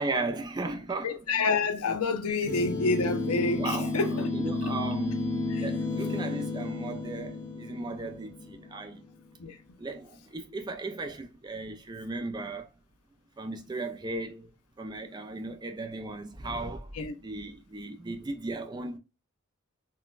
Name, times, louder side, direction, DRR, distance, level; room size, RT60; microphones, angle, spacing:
voice 1, 0.0-1.5 3.6-5.2 5.6-9.0 9.8-12.7 13.4-14.5 14.8-16.9 17.2-19.0, right 2 dB, 20° right, 0.3 m, -36 dB
voice 2, 1.0-4.3 5.5-5.6 9.4-9.6 17.0-17.1, left 4 dB, 80° left, 0.6 m, -28 dB
sound 1, 2.5-9.1, left 3 dB, 15° left, 0.7 m, -32 dB
3.9 x 2.2 x 2.3 m
head